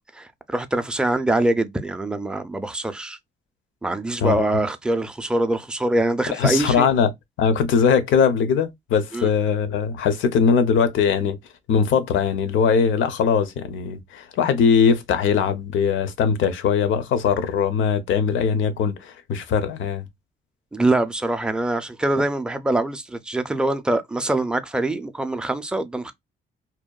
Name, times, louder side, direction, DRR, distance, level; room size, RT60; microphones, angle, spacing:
voice 1, 0.1-3.2 3.8-6.9 9.1-9.3 20.7-26.1, right 2 dB, 5° right, 0.4 m, -24 dB
voice 2, 4.2-4.5 6.3-7.1 7.4-11.4 11.7-20.1, left 6 dB, 80° left, 0.6 m, -20 dB
2.8 x 2.2 x 2.2 m
cardioid pair, 90°, 20 cm